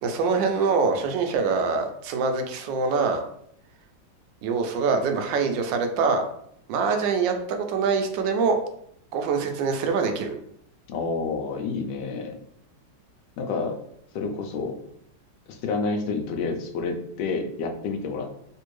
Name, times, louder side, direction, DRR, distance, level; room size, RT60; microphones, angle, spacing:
voice 1, 0.0-3.2 4.4-6.2 6.7-8.6 9.1-10.4, right 5 dB, 80° right, 5 dB, 1.2 m, -24 dB
voice 2, 10.9-12.4 13.4-13.8 14.1-14.8 15.5-18.4, left 4 dB, 80° left, 3 dB, 1.3 m, -29 dB
3.4 x 2.6 x 3.1 m, 0.70 s
omnidirectional pair, 2.0 m